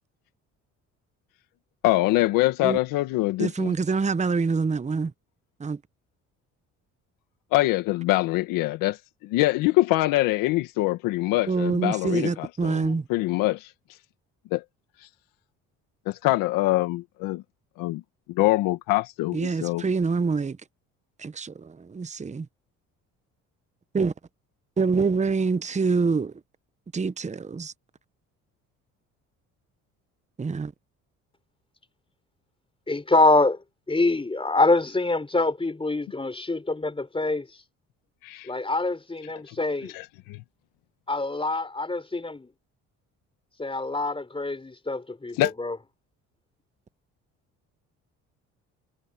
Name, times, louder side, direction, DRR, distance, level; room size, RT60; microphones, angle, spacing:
voice 1, 1.8-3.7 7.5-13.7 14.5-14.6 15.0-15.1 16.1-17.4 17.8-18.0 18.3-19.9 38.2-38.5 39.5-39.6 39.9-40.4 45.3-45.5, left 18 dB, 85° left, 1.8 m, -24 dB
voice 2, 3.4-5.1 5.6-5.8 11.5-13.0 19.3-20.6 21.2-21.5 21.9-22.4 23.9-24.1 24.8-26.3 26.9-27.7 30.4-30.7, right 4 dB, 20° right, 1.0 m, -25 dB
voice 3, 32.9-33.6 33.9-37.5 38.5-39.9 41.1-42.5 43.6-45.8, left 2 dB, 15° left, 3.8 m, -25 dB
supercardioid pair, 70°, 33 cm